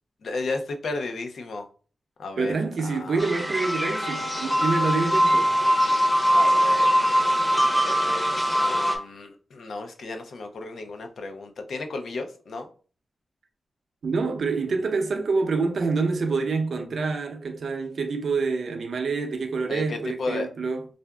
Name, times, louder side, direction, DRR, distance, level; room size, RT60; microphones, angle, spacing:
voice 1, 0.2-1.7 2.2-2.6 2.8-3.3 6.3-6.9 7.8-12.7 19.7-20.5, left 3 dB, 70° left, 0.5 m, -34 dB
voice 2, 2.4-5.5 14.0-20.9, right 4 dB, 60° right, 0.6 m, -26 dB
sound 1, 3.2-9.0, equal, 10° left, 0.7 m, -22 dB
4.5 x 2.5 x 2.2 m
wide cardioid pair, 155°, 0 cm